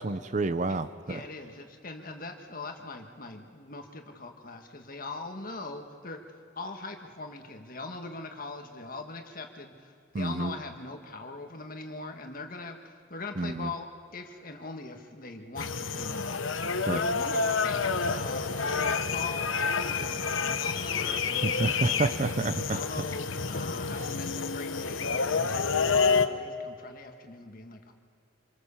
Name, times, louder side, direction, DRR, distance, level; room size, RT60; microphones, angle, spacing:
voice 1, 0.0-1.2 10.1-10.6 13.4-13.7 16.8-17.0 21.4-22.8, right 2 dB, 35° right, 12 dB, 0.6 m, -29 dB
voice 2, 1.1-6.2 6.6-16.6 16.9-22.1 22.7-27.9, left 3 dB, 45° left, 4 dB, 1.7 m, -41 dB
sound 1, 15.6-26.3, left 5 dB, 75° left, 1.0 m, -29 dB
26.0 x 24.5 x 7.1 m, 2.2 s
head